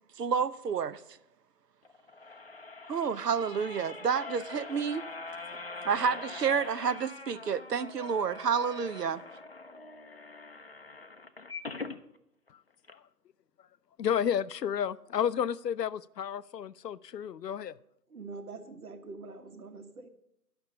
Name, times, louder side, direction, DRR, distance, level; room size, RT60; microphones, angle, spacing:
voice 1, 0.2-1.0 2.9-5.1 5.8-9.2, right 6 dB, 80° right, 0.7 m, -29 dB
sound 1, 1.8-12.0 12.5-12.6 12.8-12.9, left 3 dB, 40° left, 0.5 m, -44 dB
voice 2, 14.0-17.8, left 8 dB, 90° left, 0.6 m, -31 dB
voice 3, 18.1-20.1, right 3 dB, 65° right, 1.5 m, -44 dB
11.0 x 6.1 x 6.7 m
figure-of-eight pair, 160°, 47 cm